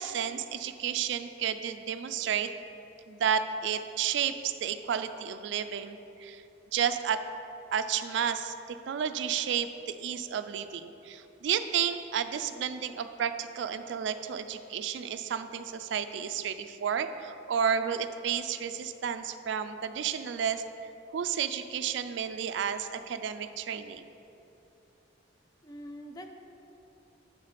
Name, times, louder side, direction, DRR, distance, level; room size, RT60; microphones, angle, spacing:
voice 1, 0.0-2.5 3.1-6.4 6.7-7.2 7.7-20.6 21.1-24.1, right 8 dB, 70° right, 9 dB, 0.3 m, -31 dB
voice 2, 25.6-26.3, equal, 20° left, 5 dB, 0.4 m, -44 dB
8.0 x 4.0 x 5.0 m, 2.9 s
head